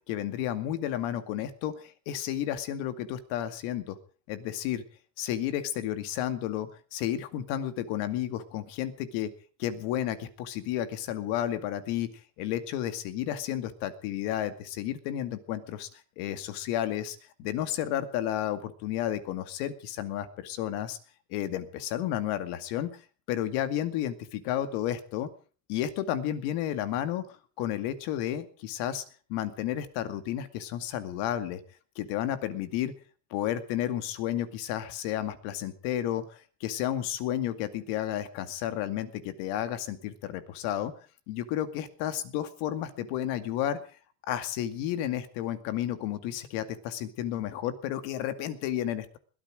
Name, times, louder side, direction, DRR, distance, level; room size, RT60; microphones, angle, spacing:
voice 1, 0.1-4.0 4.3-4.8 5.2-9.3 9.6-12.1 12.4-15.9 16.2-21.0 21.3-23.0 23.3-25.3 25.7-29.0 29.3-31.6 32.0-32.9 33.3-40.9 41.3-43.8 44.3-49.2, left 11 dB, 80° left, 10 dB, 2.3 m, -32 dB
21.5 x 13.5 x 5.0 m, 0.40 s
cardioid pair, 135°, 39 cm